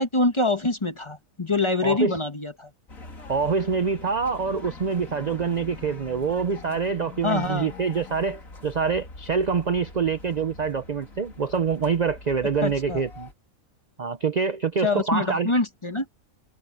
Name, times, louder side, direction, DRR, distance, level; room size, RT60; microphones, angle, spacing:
voice 1, 0.0-2.7 7.2-7.7 12.6-13.0 14.8-16.1, left 2 dB, 25° left, 1.1 m, -25 dB
sound 1, 2.9-13.3, left 3 dB, 75° left, 3.6 m, -43 dB
voice 2, 3.3-13.3 14.0-15.5, right 5 dB, 45° right, 0.6 m, -25 dB
omnidirectional pair, 1.5 m